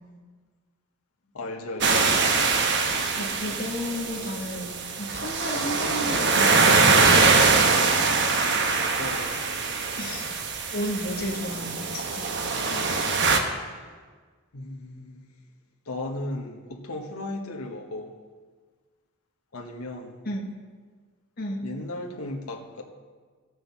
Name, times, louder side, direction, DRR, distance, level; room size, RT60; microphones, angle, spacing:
voice 1, 1.3-2.1 8.4-9.4 13.6-13.8 14.5-15.2 15.9-18.1 19.5-20.2 21.6-22.8, left 2 dB, 85° left, 1 dB, 1.3 m, -36 dB
sound 1, 1.8-13.4, right 4 dB, 50° right, 1.0 m, -23 dB
voice 2, 3.1-7.2 10.0-10.4 10.7-12.3 20.2-20.5 21.4-21.7, left 1 dB, 45° left, 0 dB, 1.3 m, -33 dB
14.5 x 6.2 x 7.2 m, 1.5 s
head